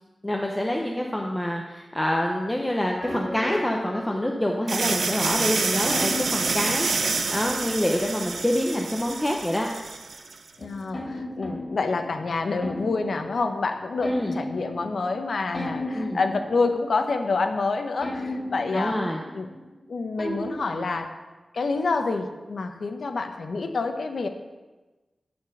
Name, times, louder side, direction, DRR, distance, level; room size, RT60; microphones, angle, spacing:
voice 1, 0.2-9.7 14.0-14.3 15.9-16.2 18.7-19.2, left 1 dB, 10° left, 0 dB, 0.8 m, -26 dB
sound 1, 3.0-4.8 5.9-7.9 10.6-17.6 18.0-21.0, left 1 dB, 35° left, 2.3 m, -36 dB
sound 2, 4.7-10.4, right 4 dB, 80° right, 0.7 m, -27 dB
voice 2, 10.6-19.0 19.3-19.5 19.9-21.2 21.5-24.3, left 3 dB, 70° left, 6 dB, 0.9 m, -27 dB
11.5 x 4.4 x 6.6 m, 1.2 s
wide cardioid pair, 115°, 0 cm